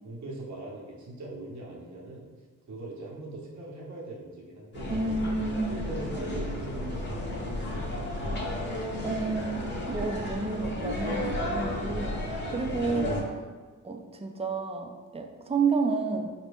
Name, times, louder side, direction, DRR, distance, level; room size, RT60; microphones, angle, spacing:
voice 1, 0.0-2.3 2.7-4.9 5.7-8.3, right 2 dB, 60° right, -4 dB, 1.1 m, -41 dB
sound 1, 4.7-13.2, left 1 dB, 35° left, 0.9 m, -33 dB
voice 2, 4.9-5.7 9.0-13.5 13.8-16.3, right 4 dB, 20° right, 4 dB, 0.4 m, -30 dB
4.4 x 2.6 x 3.5 m, 1.4 s
cardioid pair, 95°, 32 cm